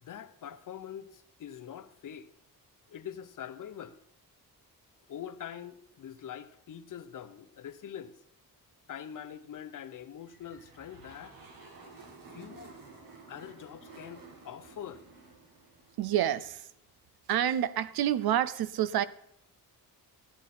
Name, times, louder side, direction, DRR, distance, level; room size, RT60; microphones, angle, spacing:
voice 1, 0.0-2.3 2.9-4.0 5.1-8.1 8.9-11.3 12.3-12.8 13.3-15.0, left 9 dB, 60° left, 0.9 m, -44 dB
sound 1, 10.3-16.7, right 4 dB, 65° right, 2.6 m, -53 dB
voice 2, 16.0-16.7 17.3-19.0, right 11 dB, 80° right, 0.7 m, -28 dB
13.0 x 9.7 x 4.3 m
cardioid pair, 120°, 36 cm